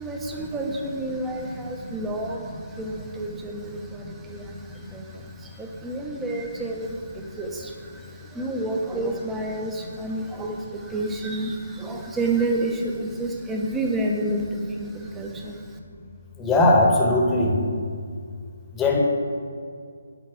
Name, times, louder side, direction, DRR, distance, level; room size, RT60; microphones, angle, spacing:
voice 1, 0.0-15.6, right 2 dB, 10° right, 1 dB, 0.8 m, -30 dB
voice 2, 16.4-17.6 18.7-19.0, left 2 dB, 10° left, -1 dB, 1.1 m, -19 dB
9.2 x 4.0 x 6.3 m, 2.2 s
figure-of-eight pair, 150°, 0 cm